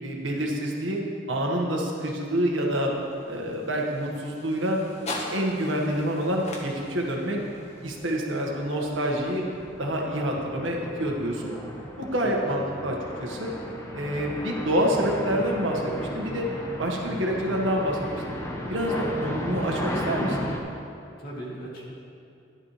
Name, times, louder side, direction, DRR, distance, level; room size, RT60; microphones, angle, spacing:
voice 1, 0.0-1.0 1.3-2.9 3.3-4.8 5.3-7.4 7.8-9.4 9.8-11.5 12.0-13.5 13.9-16.5 16.8-18.2 18.7-20.5, equal, 80° right, -1 dB, 1.7 m, -27 dB
sound 1, 2.2-10.3, left 1 dB, 35° left, 1.4 m, -42 dB
sound 2, 7.6-7.8 8.3-20.6, left 1 dB, 15° left, 1.0 m, -35 dB
voice 2, 12.2-12.9 21.2-21.9, right 1 dB, 55° left, -5 dB, 2.4 m, -38 dB
13.0 x 10.5 x 3.3 m, 2.6 s
head